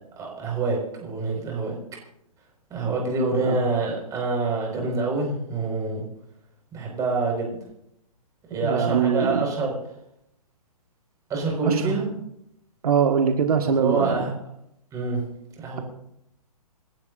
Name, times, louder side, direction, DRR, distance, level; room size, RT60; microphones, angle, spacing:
voice 1, 0.2-1.7 2.7-6.1 6.7-7.6 8.5-9.8 11.3-12.1 13.7-14.3 14.9-15.2 15.6-15.8, right 3 dB, 15° right, 0 dB, 5.5 m, -26 dB
voice 2, 8.6-9.4 11.6-12.0 12.8-14.2, right 6 dB, 75° right, 4 dB, 1.8 m, -22 dB
28.0 x 12.0 x 2.7 m, 0.79 s
hypercardioid pair, 145°, 19 cm